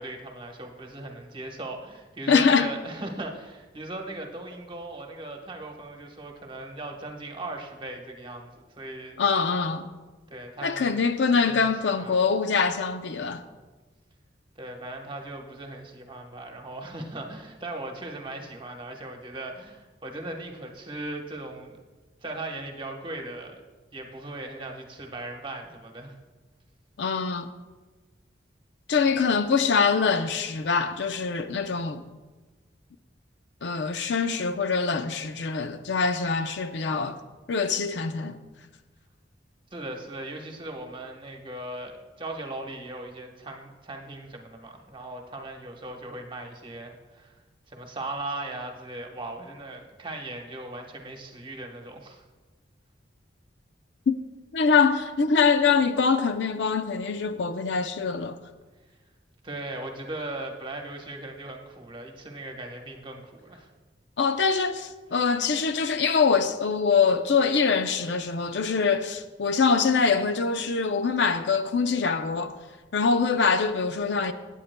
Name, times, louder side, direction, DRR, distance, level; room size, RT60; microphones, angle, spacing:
voice 1, 0.0-8.5 8.8-9.2 10.3-11.0 11.3-12.2 14.6-21.8 22.2-23.6 23.9-26.2 29.0-29.3 39.7-52.2 59.4-63.7, right 2 dB, 30° right, 1.1 m, -38 dB
voice 2, 2.3-2.7 9.2-9.9 10.6-13.4 27.0-27.5 28.9-32.0 33.6-37.2 37.5-38.4 54.1-54.2 54.5-58.4 64.2-72.6 72.9-74.3, left 5 dB, 70° left, 0.5 m, -24 dB
17.0 x 8.6 x 2.2 m
head